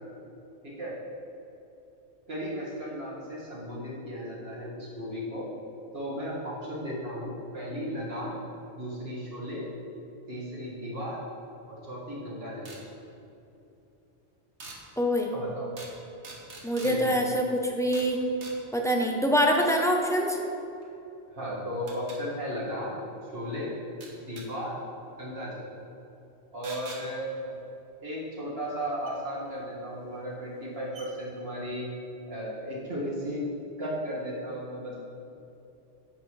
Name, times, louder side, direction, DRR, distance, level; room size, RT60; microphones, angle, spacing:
voice 1, 0.6-0.9 2.3-5.5 5.9-8.4 8.7-9.7 10.3-11.2 11.7-12.7 15.3-15.7 16.8-17.1 21.3-23.0 23.3-23.7 24.2-24.8 25.2-25.7 26.5-27.6 28.0-31.9 32.3-33.4 33.8-35.0, equal, 60° right, -6 dB, 2.2 m, -35 dB
sound 1, 12.6-12.8 14.6-14.8 15.8-16.0 16.2-17.0 17.9-18.1 18.4-18.6 20.8-20.9 21.9-22.2 24.0-24.5 26.6-27.0 29.1-29.2 30.1-30.2 30.6-30.7 30.9-31.1, right 3 dB, 80° right, 1.5 m, -43 dB
voice 2, 15.0-15.3 16.6-18.2 18.7-20.4, equal, 5° left, 0 dB, 0.6 m, -25 dB
10.5 x 7.9 x 3.2 m, 2.9 s
omnidirectional pair, 1.2 m